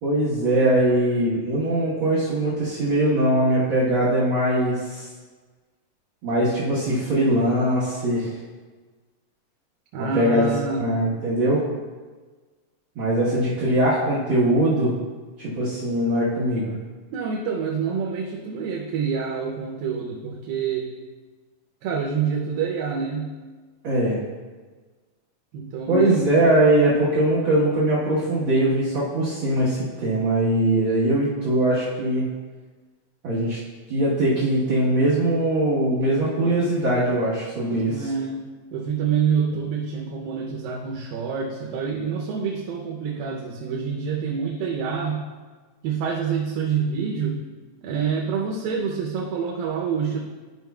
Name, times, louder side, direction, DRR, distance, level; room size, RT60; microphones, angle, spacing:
voice 1, 0.0-5.1 6.2-8.3 10.0-10.5 10.8-11.6 12.9-14.9 15.4-16.7 23.8-24.2 25.9-32.3 33.2-33.6 33.9-38.1, right 1 dB, 55° right, -9 dB, 1.4 m, -21 dB
voice 2, 9.9-10.8 17.1-20.9 21.8-23.3 25.5-26.3 37.9-38.4 38.7-45.2 45.8-47.4 47.8-50.2, right 6 dB, 85° right, -1 dB, 2.5 m, -27 dB
12.5 x 5.3 x 2.3 m, 1.4 s
omnidirectional pair, 4.0 m